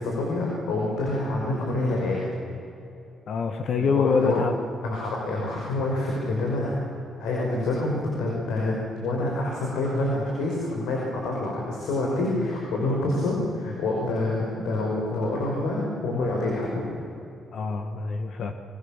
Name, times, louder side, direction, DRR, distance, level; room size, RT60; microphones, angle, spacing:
voice 1, 0.0-2.2 3.9-4.4 4.8-6.8 7.2-16.8, left 2 dB, 90° left, -2 dB, 5.6 m, -27 dB
voice 2, 3.3-4.5 17.5-18.5, left 5 dB, 60° left, 6 dB, 1.8 m, -25 dB
27.0 x 24.5 x 7.5 m, 2.8 s
cardioid pair, 90°, 0 cm